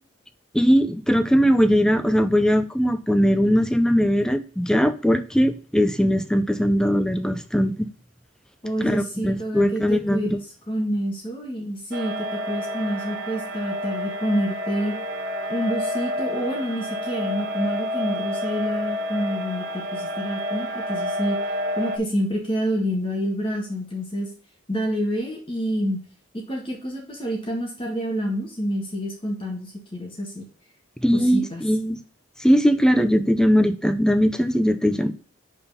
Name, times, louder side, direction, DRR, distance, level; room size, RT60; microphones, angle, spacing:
voice 1, 0.5-7.9 8.8-10.4 31.0-32.0 32.4-35.1, equal, 5° left, 10 dB, 0.4 m, -20 dB
voice 2, 8.6-10.4 10.7-14.9 15.5-21.4 21.8-24.3 24.7-26.0 26.3-30.4 31.1-31.6, equal, 25° left, -1 dB, 1.6 m, -28 dB
sound 1, 11.9-22.0, left 1 dB, 55° right, 0.9 m, -29 dB
5.5 x 4.3 x 5.5 m, 0.41 s
head